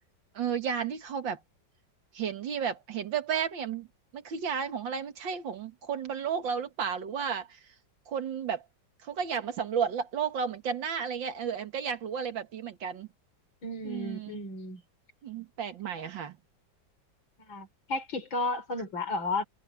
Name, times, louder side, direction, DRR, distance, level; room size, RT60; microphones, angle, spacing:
voice 1, 0.4-1.4 2.1-3.9 4.1-7.6 8.1-8.6 9.0-13.1 13.8-14.4 15.2-16.3, right 7 dB, 75° right, 2.3 m, -33 dB
voice 2, 13.6-14.8 17.4-19.4, left 2 dB, 80° left, 4.1 m, -33 dB
omnidirectional pair, 2.1 m